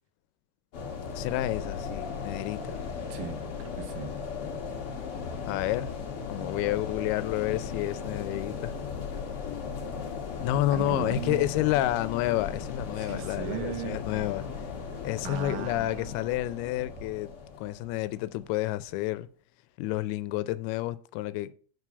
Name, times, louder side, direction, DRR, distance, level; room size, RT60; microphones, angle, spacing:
sound 1, 0.7-18.7, left 6 dB, 60° left, 1.5 m, -37 dB
voice 1, 1.1-2.8 5.5-5.9 6.3-8.7 10.4-14.4 15.0-19.3 19.8-21.5, left 15 dB, 85° left, 2.5 m, -30 dB
voice 2, 3.1-4.1 6.4-6.8 10.7-11.8 13.0-14.4 15.2-16.2, right 9 dB, 75° right, 2.7 m, -38 dB
7.4 x 4.7 x 6.7 m
omnidirectional pair, 4.5 m